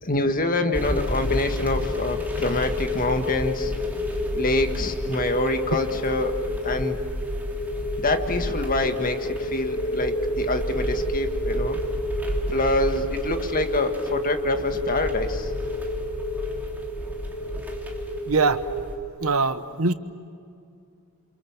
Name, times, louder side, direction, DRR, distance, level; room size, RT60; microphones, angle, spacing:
voice 1, 0.0-3.7 4.3-6.3 6.6-7.0 8.0-11.8 12.5-15.5, left 2 dB, 40° left, 6 dB, 1.8 m, -26 dB
sound 1, 0.7-19.0, equal, 10° right, 3.3 m, -33 dB
sound 2, 0.9-19.0, left 1 dB, 65° left, 4.6 m, -31 dB
voice 2, 18.3-18.6 19.2-19.9, right 4 dB, 70° right, 11 dB, 1.2 m, -22 dB
29.0 x 27.5 x 7.4 m, 2.3 s
head